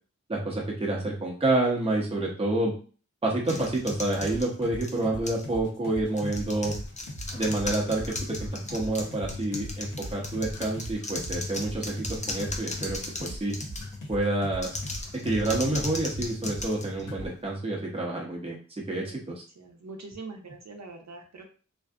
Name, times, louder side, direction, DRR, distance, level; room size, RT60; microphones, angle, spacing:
voice 1, 0.3-2.7 3.2-6.8 7.3-13.6 14.1-14.7 15.1-18.6 18.9-19.4, right 2 dB, 20° right, -2 dB, 0.7 m, -28 dB
sound 1, 3.5-5.5 6.1-14.0 14.5-17.5, left 2 dB, 25° left, 0.4 m, -37 dB
sound 2, 4.2-16.8 17.1-17.3, right 1 dB, 90° left, 0.8 m, -40 dB
voice 2, 19.0-21.5, right 3 dB, 60° right, 4 dB, 0.6 m, -44 dB
2.6 x 2.3 x 2.3 m, 0.39 s
wide cardioid pair, 65°, 30 cm